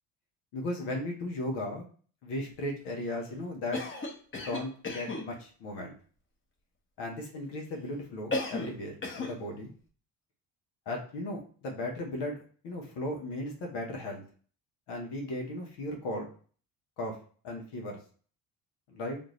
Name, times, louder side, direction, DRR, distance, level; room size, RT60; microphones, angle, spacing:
voice 1, 0.5-1.8 2.2-3.8 4.3-5.9 7.0-9.7 10.9-14.2 14.9-16.3 17.0-17.2 17.4-18.0 18.9-19.2, left 1 dB, 70° left, 1 dB, 1.1 m, -36 dB
Cough, 3.7-5.3 8.3-8.8 9.0-9.4, left 2 dB, 30° left, 1.0 m, -34 dB
3.6 x 2.6 x 3.1 m, 0.42 s
supercardioid pair, 75°, 41 cm